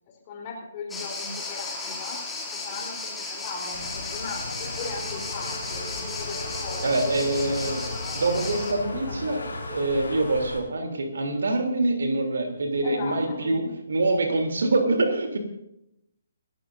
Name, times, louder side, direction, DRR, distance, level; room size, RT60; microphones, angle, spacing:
voice 1, 0.3-2.2 2.5-6.9 7.3-8.2 9.1-9.6 12.8-13.7, left 4 dB, 30° left, 0 dB, 3.9 m, -38 dB
sound 1, 0.9-8.7, left 3 dB, 5° left, 2.8 m, -35 dB
sound 2, 3.7-10.6, left 3 dB, 70° left, 4.4 m, -36 dB
Bowed string instrument, 4.8-10.5, right 2 dB, 15° right, 3.8 m, -43 dB
voice 2, 6.8-7.8 8.1-9.4 9.7-15.4, right 2 dB, 60° right, 3 dB, 3.4 m, -25 dB
28.0 x 13.5 x 2.7 m, 0.82 s
figure-of-eight pair, 135°, 0 cm